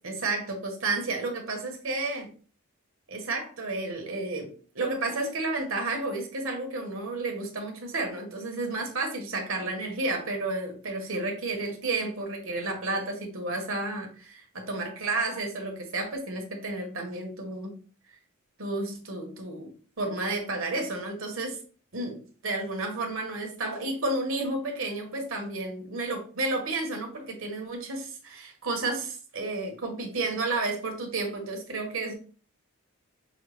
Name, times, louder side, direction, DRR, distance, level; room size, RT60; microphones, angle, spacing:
voice 1, 0.0-2.3 3.1-17.8 18.6-19.7 20.0-21.6 21.9-32.1, right 2 dB, 70° right, 3 dB, 1.3 m, -31 dB
6.3 x 2.3 x 3.2 m, 0.40 s
head